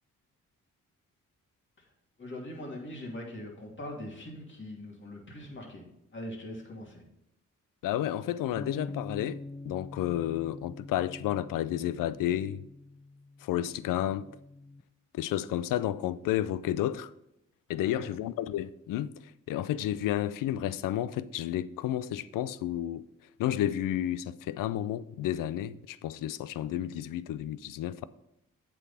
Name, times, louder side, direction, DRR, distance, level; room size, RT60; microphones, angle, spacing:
voice 1, 2.2-5.8 6.1-7.0 17.8-18.1, left 1 dB, 35° left, 2.6 m, -42 dB
voice 2, 7.8-12.6 13.4-14.3 15.1-17.1 17.7-23.1 23.4-28.0, left 12 dB, 85° left, 0.5 m, -31 dB
sound 1, 8.6-14.8, left 2 dB, 10° left, 0.6 m, -45 dB
8.1 x 6.3 x 4.2 m
cardioid pair, 60°, 32 cm